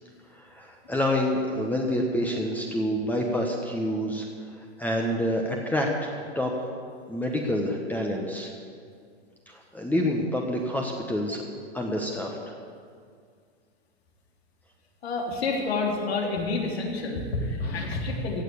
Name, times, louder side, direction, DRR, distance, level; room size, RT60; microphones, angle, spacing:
voice 1, 0.3-4.3 4.8-6.6 7.1-8.5 9.5-11.4 11.7-12.5, left 1 dB, 5° left, 0 dB, 1.1 m, -27 dB
voice 2, 15.0-18.4, left 3 dB, 80° left, 0 dB, 3.3 m, -28 dB
15.5 x 7.5 x 8.5 m, 2.2 s
hypercardioid pair, 130°, 31 cm